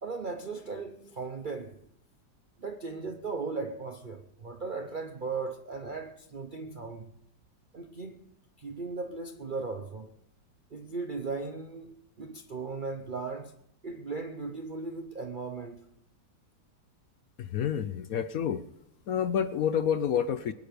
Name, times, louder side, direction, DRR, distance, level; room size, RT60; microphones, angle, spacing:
voice 1, 0.0-1.8 2.6-7.1 7.7-8.2 8.6-10.2 10.7-13.6 13.8-15.9, right 4 dB, 50° right, 0.6 m, -37 dB
voice 2, 17.4-18.6 19.1-20.5, left 8 dB, 65° left, 1.0 m, -28 dB
22.0 x 9.7 x 5.1 m
omnidirectional pair, 1.9 m